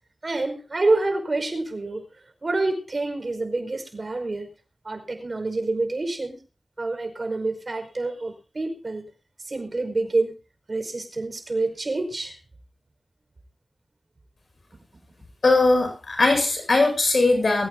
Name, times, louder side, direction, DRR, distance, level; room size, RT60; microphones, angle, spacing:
voice 1, 0.2-2.1 2.4-4.5 4.8-6.4 6.8-9.1 9.4-10.3 10.7-12.4, right 2 dB, 50° right, 5 dB, 5.1 m, -27 dB
voice 2, 15.4-17.7, left 2 dB, 70° left, 4 dB, 7.7 m, -20 dB
23.0 x 15.5 x 2.6 m, 0.32 s
wide cardioid pair, 65°, 0 cm